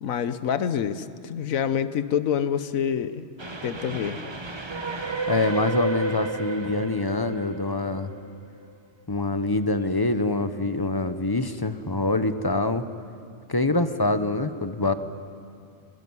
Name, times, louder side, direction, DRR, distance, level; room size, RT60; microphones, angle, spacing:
voice 1, 0.0-3.3 3.6-4.2, left 8 dB, 80° left, 12 dB, 1.3 m, -27 dB
Train, 3.4-8.7, right 3 dB, 20° right, 0.9 m, -32 dB
voice 2, 5.3-8.1 9.1-12.9 13.5-14.9, left 2 dB, 20° left, 10 dB, 0.7 m, -25 dB
24.0 x 19.0 x 9.6 m, 2.4 s
omnidirectional pair, 1.4 m